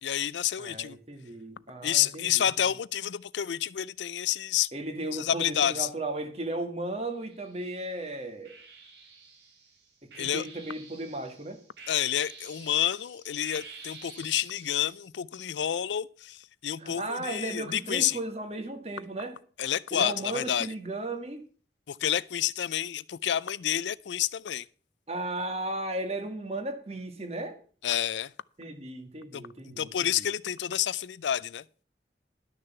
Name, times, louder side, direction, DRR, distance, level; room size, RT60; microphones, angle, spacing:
voice 1, 0.0-1.0 1.8-4.7 5.1-5.9 10.2-10.5 11.9-18.2 19.6-20.7 21.9-24.7 27.8-28.3 29.3-31.6, left 10 dB, 85° left, 0.4 m, -29 dB
voice 2, 0.6-2.4 4.7-8.6 10.1-11.6 16.8-19.3 19.9-21.4 25.1-27.6 28.6-30.2, right 2 dB, 35° right, 1.6 m, -35 dB
sound 1, 7.1-7.8 8.4-15.1, right 4 dB, 85° right, 3.0 m, -49 dB
12.0 x 6.6 x 6.8 m
head